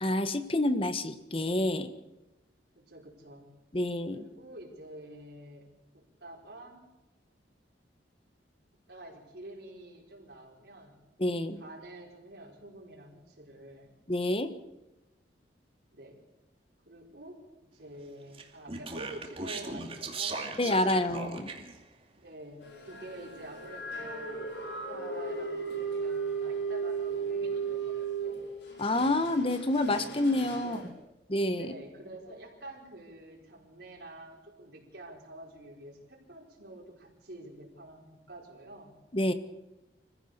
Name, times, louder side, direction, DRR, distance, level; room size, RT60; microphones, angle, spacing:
voice 1, 0.0-1.9 3.7-4.2 11.2-11.6 14.1-14.5 20.6-21.5 28.8-30.8 31.3-31.8 39.1-39.3, left 1 dB, 30° left, 11 dB, 1.3 m, -28 dB
voice 2, 2.7-3.5 4.1-5.7 5.9-6.9 8.9-11.0 11.6-13.9 15.9-16.2 16.8-17.4 17.7-20.6 22.2-28.3 30.6-31.0 31.5-38.9, right 1 dB, 65° right, -2 dB, 4.9 m, -48 dB
Speech, 18.3-21.8, right 3 dB, 30° right, 2.5 m, -38 dB
sound 1, 22.6-30.9, right 5 dB, 75° left, 5.1 m, -36 dB
25.5 x 15.5 x 6.8 m, 1.0 s
head